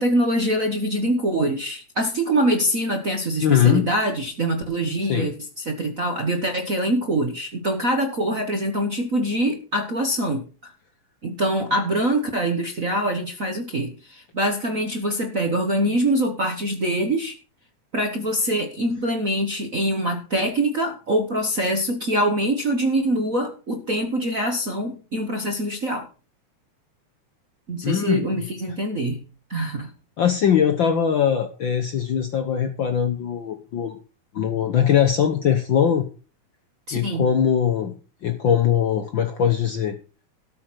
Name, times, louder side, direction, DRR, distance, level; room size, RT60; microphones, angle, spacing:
voice 1, 0.0-10.7 11.2-17.4 17.9-26.1 27.7-29.2 29.5-29.9 36.9-37.3, right 1 dB, 50° right, 5 dB, 1.0 m, -24 dB
voice 2, 3.4-3.9 5.1-5.3 27.8-28.5 30.2-34.0 34.3-36.1 36.9-38.0 38.2-40.0, left 8 dB, 70° left, 7 dB, 1.1 m, -21 dB
13.0 x 6.4 x 6.2 m, 0.35 s
omnidirectional pair, 3.5 m